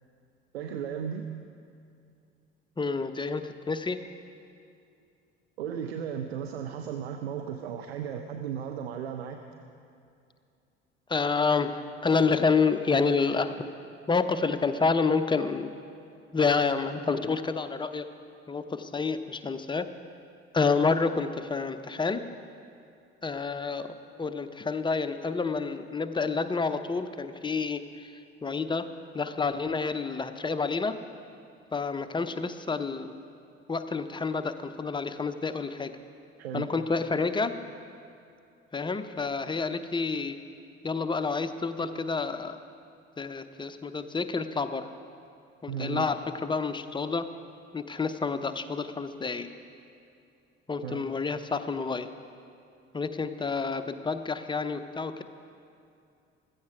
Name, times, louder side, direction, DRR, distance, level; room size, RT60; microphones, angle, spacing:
voice 1, 0.5-1.3 5.6-9.4 36.4-36.7 45.7-46.1 50.8-51.1, right 8 dB, 75° right, 5 dB, 0.7 m, -35 dB
voice 2, 2.8-4.0 11.1-13.6 14.1-15.7 16.3-18.1 18.5-19.9 20.5-22.2 23.2-23.9 24.2-28.1 28.4-28.9 29.1-31.0 31.7-33.1 33.7-36.0 36.5-37.5 38.7-40.4 40.8-42.6 43.2-44.9 45.6-47.3 47.7-49.5 50.7-52.1 52.9-55.2, left 4 dB, 15° left, 10 dB, 0.7 m, -28 dB
15.0 x 14.5 x 4.8 m, 2.5 s
figure-of-eight pair, 55°, 32 cm